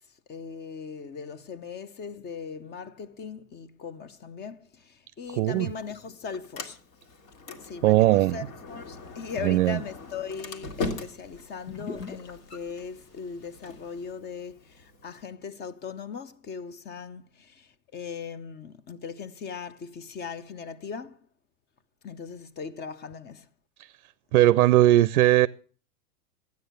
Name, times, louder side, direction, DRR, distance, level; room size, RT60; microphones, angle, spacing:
voice 1, 0.3-6.8 7.6-21.2 22.0-23.5, left 6 dB, 20° left, 0.7 m, -39 dB
Sliding door, 5.2-15.2, left 3 dB, 60° left, 2.2 m, -41 dB
voice 2, 5.3-5.7 7.8-8.4 9.4-9.8 24.3-25.5, right 15 dB, 60° right, 0.6 m, -19 dB
sound 1, 8.7-14.1, left 4 dB, 80° left, 2.1 m, -47 dB
13.0 x 9.4 x 6.6 m
hypercardioid pair, 110°, 46 cm